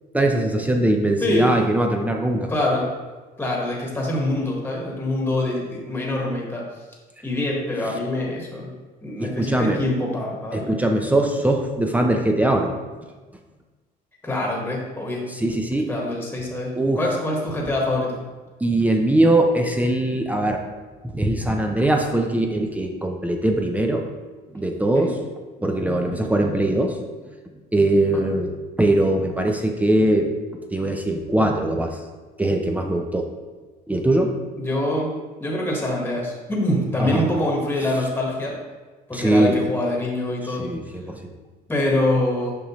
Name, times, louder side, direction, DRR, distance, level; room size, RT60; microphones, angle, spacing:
voice 1, 0.1-2.5 9.2-9.8 10.5-12.7 15.3-15.9 16.7-17.0 18.6-20.6 21.1-24.0 24.5-25.2 25.6-27.0 27.7-30.3 30.7-32.0 32.4-33.3 33.9-34.3 37.0-37.3 39.1-39.6 40.6-41.2, right 1 dB, 10° right, 3 dB, 0.6 m, -21 dB
voice 2, 1.2-1.6 2.5-2.9 3.4-6.6 7.2-8.7 9.0-10.7 14.2-15.3 15.9-18.2 24.9-25.1 34.6-35.1 35.4-38.6 39.1-40.7 41.7-42.5, left 1 dB, 10° left, -2 dB, 1.4 m, -24 dB
6.8 x 4.9 x 3.1 m, 1.3 s
cardioid pair, 110°, 17 cm